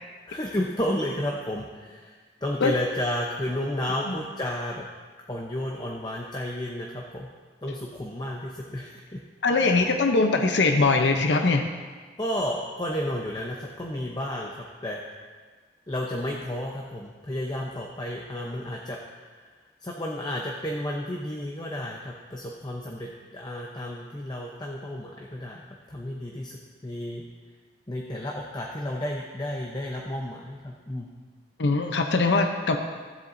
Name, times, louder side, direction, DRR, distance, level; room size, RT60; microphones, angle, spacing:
voice 1, 0.3-4.8 5.3-7.3 7.6-9.2 9.5-9.8 12.2-15.0 15.9-19.0 19.3-19.5 19.8-25.6 25.9-27.2 27.9-31.1, left 1 dB, 25° left, -1 dB, 0.7 m, -32 dB
voice 2, 9.4-11.7 31.6-32.8, left 3 dB, 75° left, 5 dB, 0.7 m, -21 dB
15.5 x 7.9 x 2.6 m, 1.5 s
head